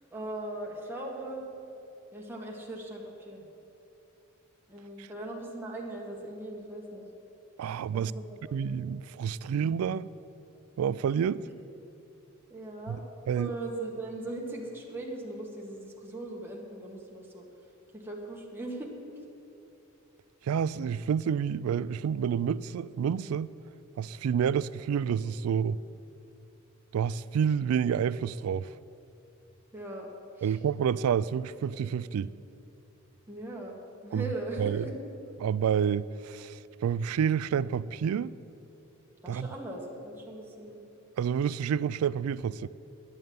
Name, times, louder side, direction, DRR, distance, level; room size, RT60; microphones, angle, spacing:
voice 1, 0.1-1.5 2.1-3.5 4.7-7.0 7.9-8.4 12.5-13.0 13.4-17.5 17.9-18.9 29.7-30.1 30.4-30.6 33.3-33.7 34.0-34.9 39.2-40.8, right 2 dB, 10° right, 1.6 m, -39 dB
voice 2, 7.6-8.1 8.5-10.1 10.8-11.4 12.9-13.0 13.3-13.5 20.4-23.5 24.0-25.8 26.9-28.7 30.4-32.3 34.1-34.3 34.6-34.8 35.4-38.3 39.3-39.5 41.2-42.7, right 7 dB, 80° right, 0.3 m, -29 dB
10.5 x 6.6 x 9.3 m
head